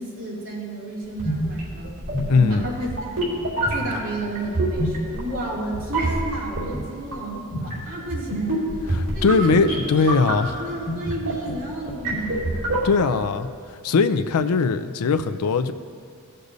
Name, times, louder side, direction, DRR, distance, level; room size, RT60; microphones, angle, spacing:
voice 1, 0.0-2.0 2.3-3.4 3.7-8.7 9.1-12.8, right 2 dB, 65° right, -6 dB, 2.6 m, -32 dB
sound 1, 1.1-13.2, right 1 dB, 85° right, 2.6 m, -27 dB
voice 2, 2.3-2.7 8.9-10.6 12.8-13.5 13.8-15.7, left 4 dB, 80° left, 10 dB, 0.4 m, -20 dB
16.5 x 6.5 x 2.7 m, 2.1 s
head